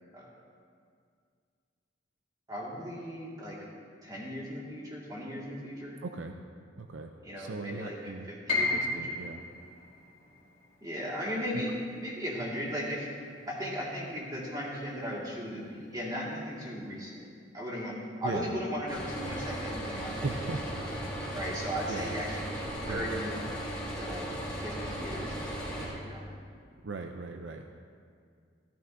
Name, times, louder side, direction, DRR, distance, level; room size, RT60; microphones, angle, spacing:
voice 1, 2.5-3.6 4.0-6.0 7.2-9.2 10.8-11.7 12.0-13.1 13.5-17.2 17.5-20.6 21.3-23.5 24.0-26.3, equal, 20° right, -4 dB, 1.9 m, -37 dB
voice 2, 6.0-6.4 6.8-7.1 7.4-8.3 8.7-9.4 18.2-18.5 20.2-20.7 21.9-22.2 22.9-23.1 26.8-27.7, right 3 dB, 65° right, 5 dB, 0.5 m, -38 dB
Piano, 8.5-14.4 14.7-15.9 16.3-16.4 17.1-17.4, left 3 dB, 30° left, 2.5 m, -36 dB
sound 1, 18.9-25.9, equal, 5° left, 2.8 m, -36 dB
14.0 x 13.0 x 2.6 m, 2.2 s
head